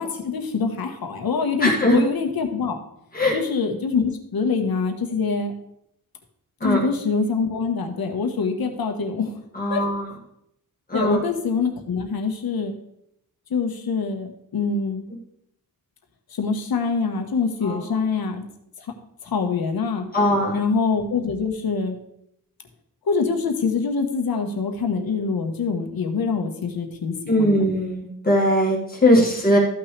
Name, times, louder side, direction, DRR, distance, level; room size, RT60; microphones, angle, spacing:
voice 1, 0.0-2.8 3.3-5.5 6.6-9.4 9.7-9.8 10.9-12.8 13.5-15.1 16.3-18.5 18.8-18.9 19.2-20.1 20.5-22.0 23.0-27.6 29.1-29.3, left 5 dB, 85° left, 4 dB, 1.3 m, -25 dB
voice 2, 1.6-2.0 3.1-3.3 6.6-6.8 9.6-10.1 10.9-11.2 17.7-17.8 20.1-20.6 27.3-29.6, left 1 dB, 25° left, -4 dB, 1.9 m, -20 dB
14.0 x 6.0 x 3.3 m, 0.78 s
wide cardioid pair, 170°, 35 cm